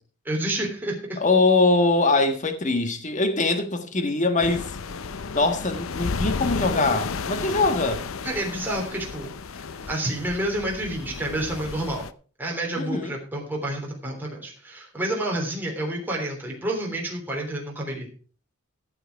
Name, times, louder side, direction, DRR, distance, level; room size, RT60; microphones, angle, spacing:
voice 1, 0.2-1.2 8.2-12.0 12.4-18.1, right 1 dB, 10° right, 3.3 m, -29 dB
voice 2, 1.2-4.7 5.3-8.0 12.8-13.1, left 3 dB, 40° left, 1.6 m, -22 dB
sound 1, 4.4-12.1, left 4 dB, 90° left, 0.7 m, -33 dB
14.5 x 8.0 x 4.6 m
head